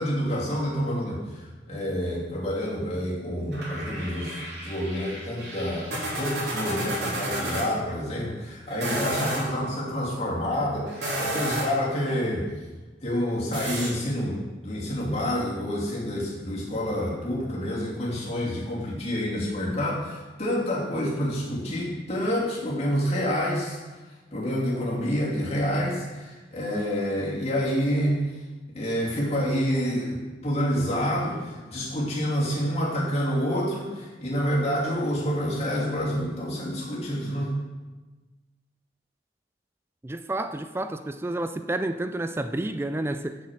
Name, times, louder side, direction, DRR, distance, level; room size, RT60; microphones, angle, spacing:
voice 1, 0.0-12.5 13.0-24.0 24.3-28.2 28.7-37.6, equal, 35° left, -6 dB, 3.0 m, -28 dB
sound 1, 3.5-7.7 8.7-9.4 10.9-11.8 13.5-13.9, right 1 dB, 70° right, 3.5 m, -31 dB
voice 2, 40.0-43.4, right 2 dB, 15° right, 10 dB, 0.4 m, -30 dB
7.1 x 6.7 x 7.5 m, 1.2 s
head